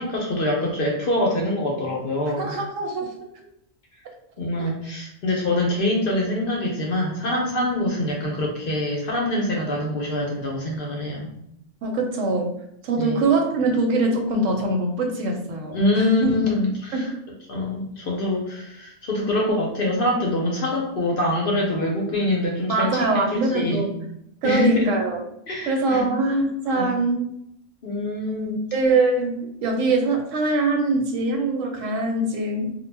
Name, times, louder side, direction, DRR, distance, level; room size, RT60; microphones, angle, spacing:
voice 1, 0.0-2.5 4.4-11.3 13.0-13.2 15.7-17.1 17.5-23.2 23.5-23.9 24.4-24.9 25.5-26.1 26.7-26.9 27.8-28.7, left 1 dB, 60° left, -1 dB, 0.6 m, -24 dB
voice 2, 2.4-3.1 11.8-12.5 12.8-16.3 16.9-17.0 22.7-23.9 24.4-25.2 25.7-27.3 28.7-32.7, right 2 dB, 85° right, 3 dB, 1.0 m, -23 dB
2.2 x 2.1 x 3.2 m, 0.75 s
omnidirectional pair, 1.3 m